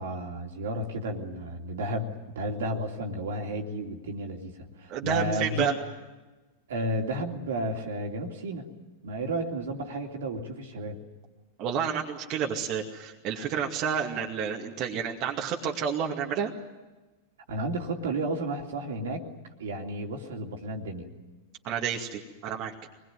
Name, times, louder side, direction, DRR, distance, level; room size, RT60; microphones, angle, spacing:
voice 1, 0.0-5.7 6.7-8.7 9.0-11.0 17.5-19.3 19.6-21.1, right 1 dB, 65° right, 2 dB, 3.1 m, -32 dB
voice 2, 4.9-5.7 11.6-16.5 21.6-22.7, right 7 dB, 40° right, 0 dB, 2.4 m, -30 dB
24.5 x 21.5 x 9.5 m, 1.2 s
figure-of-eight pair, 90°, 0 cm